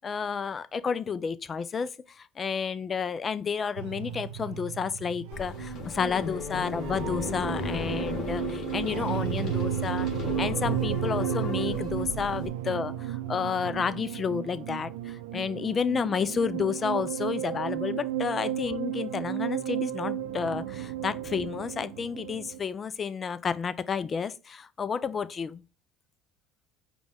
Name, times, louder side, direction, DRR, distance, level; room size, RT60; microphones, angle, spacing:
voice 1, 0.0-25.6, left 6 dB, 35° left, 0.4 m, -31 dB
sound 1, 3.8-22.6, right 11 dB, 80° right, 0.4 m, -34 dB
sound 2, 5.3-12.5, left 3 dB, 50° left, 1.4 m, -35 dB
5.0 x 2.3 x 3.4 m
supercardioid pair, 80°, 0 cm